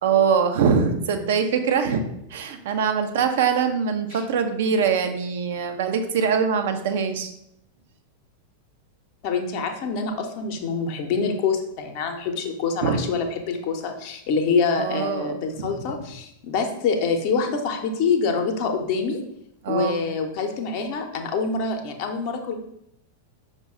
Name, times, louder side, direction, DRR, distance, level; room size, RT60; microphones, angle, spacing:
voice 1, 0.0-2.0 2.3-7.3 12.8-13.0 14.8-15.3 15.6-15.7 19.6-20.0, right 6 dB, 55° right, 7 dB, 0.5 m, -23 dB
voice 2, 9.2-19.2 19.7-22.6, left 5 dB, 45° left, 4 dB, 0.6 m, -25 dB
5.2 x 2.2 x 4.6 m, 0.77 s
figure-of-eight pair, 90°, 0 cm